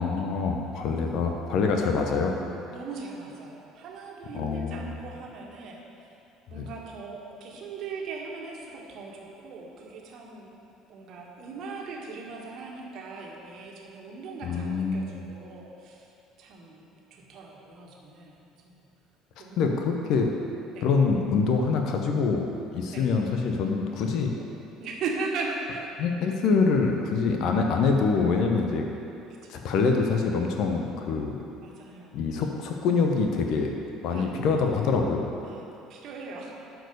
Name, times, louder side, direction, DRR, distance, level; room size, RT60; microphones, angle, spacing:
voice 1, 0.0-2.4 4.3-5.0 6.5-6.7 14.4-15.2 19.6-20.3 20.8-24.3 26.0-28.9 29.5-31.4 32.1-33.7 34.0-35.2, left 4 dB, 55° left, 2 dB, 0.9 m, -25 dB
voice 2, 2.7-6.1 6.4-16.1 16.4-18.4 18.6-18.8 19.4-19.8 20.7-20.9 22.9-23.1 24.8-25.9 29.3-29.7 31.6-32.1 32.4-32.5 34.1-34.4 35.4-36.5, right 4 dB, 55° right, -1 dB, 1.7 m, -39 dB
12.0 x 4.8 x 6.7 m, 2.7 s
figure-of-eight pair, 60°, 0 cm